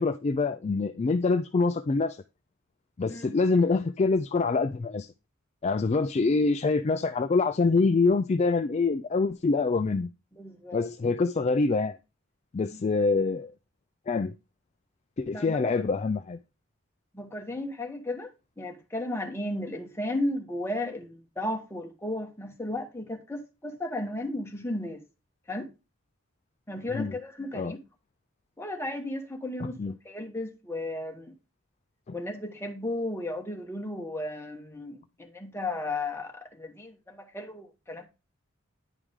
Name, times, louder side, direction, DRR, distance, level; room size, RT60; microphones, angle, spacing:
voice 1, 0.0-2.2 3.0-5.1 5.6-10.1 10.7-12.0 12.5-13.5 14.1-14.3 15.2-16.4 26.9-27.1 27.5-27.8 29.6-29.9 32.1-32.2, left 3 dB, 30° left, 0.3 m, -25 dB
voice 2, 10.3-10.9 12.7-12.8 15.3-15.7 17.1-18.3 18.6-25.0 25.5-25.7 26.7-27.8 28.6-31.4 32.1-38.1, left 1 dB, 10° left, 1.2 m, -34 dB
10.0 x 4.8 x 3.6 m
head